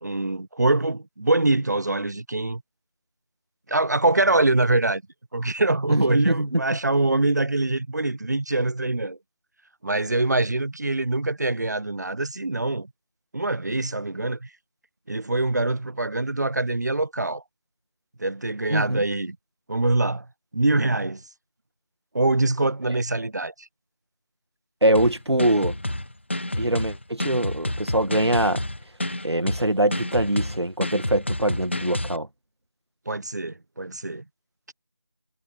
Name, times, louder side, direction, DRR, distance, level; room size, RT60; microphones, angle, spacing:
voice 1, 0.0-2.6 3.7-5.0 5.3-9.2 9.8-12.9 13.3-14.5 15.1-17.4 18.2-19.4 19.7-20.3 20.5-21.2 22.1-23.7 33.1-34.2, right 2 dB, 45° right, 1.0 m, -24 dB
voice 2, 5.9-6.6 18.7-19.0 24.8-25.8 26.6-28.7 29.2-32.3, right 1 dB, 85° right, 2.0 m, -23 dB
sound 1, 24.9-32.2, left 1 dB, 25° left, 0.5 m, -29 dB
figure-of-eight pair, 170°, 13 cm